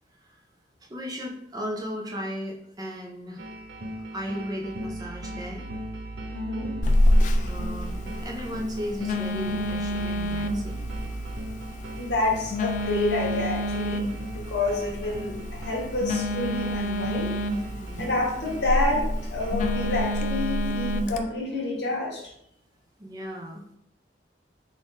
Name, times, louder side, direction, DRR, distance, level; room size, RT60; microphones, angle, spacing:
voice 1, 0.8-3.5 4.1-5.7 7.4-10.9 17.8-18.2 23.0-23.6, equal, 20° right, -1 dB, 0.6 m, -36 dB
sound 1, 3.4-20.1, right 1 dB, 65° right, 0.5 m, -37 dB
voice 2, 6.3-6.7 12.0-17.4 18.0-22.2, left 2 dB, 70° left, -2 dB, 1.1 m, -28 dB
Telephone, 6.8-21.2, left 1 dB, 45° left, 0.3 m, -28 dB
3.6 x 2.4 x 3.9 m, 0.74 s
head